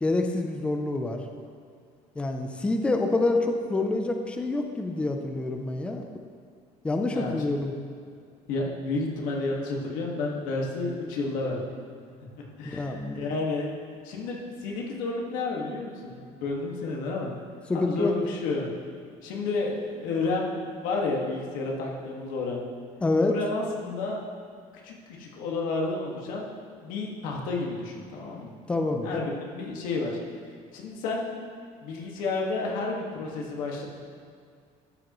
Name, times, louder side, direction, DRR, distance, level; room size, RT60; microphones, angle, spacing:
voice 1, 0.0-1.2 2.2-6.0 6.8-7.7 12.7-13.2 17.7-18.1 23.0-23.3 28.7-29.2, left 2 dB, 10° left, 4 dB, 0.4 m, -27 dB
voice 2, 8.5-11.6 12.3-13.7 14.0-17.4 17.7-18.7 19.2-22.6 23.2-24.3 24.8-26.5 26.8-28.5 29.0-30.1 30.7-31.4 31.8-33.9, left 3 dB, 75° left, -1 dB, 1.8 m, -31 dB
13.0 x 7.4 x 3.1 m, 2.2 s
cardioid pair, 180°, 14 cm